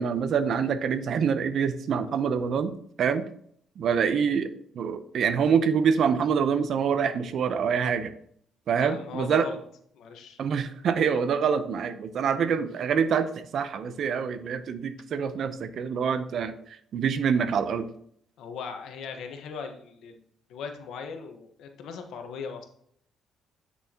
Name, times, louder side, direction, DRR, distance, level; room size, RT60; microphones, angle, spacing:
voice 1, 0.0-2.7 3.0-3.3 3.8-8.1 8.7-9.5 10.4-17.9, right 6 dB, 65° right, 12 dB, 0.8 m, -26 dB
voice 2, 8.7-9.6 9.9-10.4 18.4-20.2 20.5-22.7, left 5 dB, 80° left, 5 dB, 1.4 m, -38 dB
8.7 x 6.9 x 3.0 m, 0.65 s
cardioid pair, 90°, 0 cm